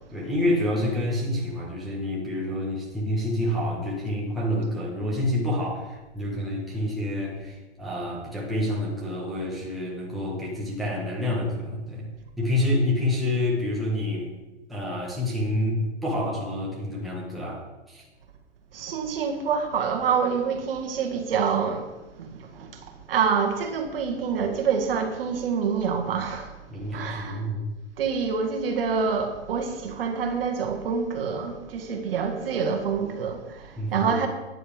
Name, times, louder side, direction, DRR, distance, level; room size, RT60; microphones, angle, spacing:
voice 1, 0.1-12.1 12.4-14.3 14.7-18.0 26.7-27.7 33.8-34.1, left 1 dB, ahead, 1.5 m, -28 dB
voice 2, 18.7-21.9 22.2-22.8 23.1-26.5 26.9-27.4 28.0-34.3, right 6 dB, 55° right, 1.7 m, -26 dB
12.5 x 9.7 x 3.5 m
hypercardioid pair, 165°, 34 cm